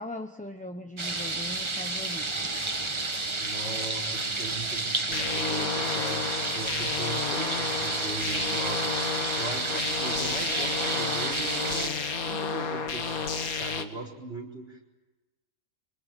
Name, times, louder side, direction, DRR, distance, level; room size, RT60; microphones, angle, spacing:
voice 1, 0.0-2.5, left 1 dB, 5° left, 4 dB, 0.9 m, -40 dB
sound 1, 1.0-11.9, right 3 dB, 20° right, 1.1 m, -31 dB
voice 2, 3.4-14.8, right 2 dB, 45° right, 1 dB, 4.9 m, -39 dB
sound 2, 5.1-13.8, left 5 dB, 90° left, 2.1 m, -32 dB
25.0 x 24.5 x 9.1 m, 1.2 s
omnidirectional pair, 1.5 m